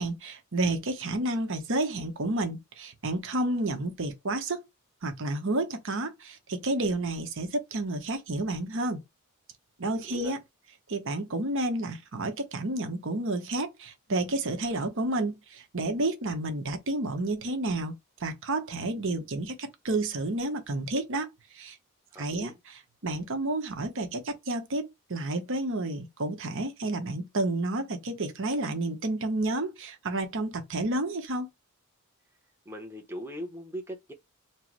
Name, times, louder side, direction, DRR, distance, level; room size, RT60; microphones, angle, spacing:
voice 1, 0.0-4.6 5.0-9.0 9.8-10.4 10.9-21.8 22.2-31.5, right 2 dB, 60° right, 1.0 m, -30 dB
voice 2, 10.0-10.3 22.1-22.6 32.7-34.1, equal, 10° right, 0.8 m, -40 dB
4.5 x 2.1 x 4.5 m
head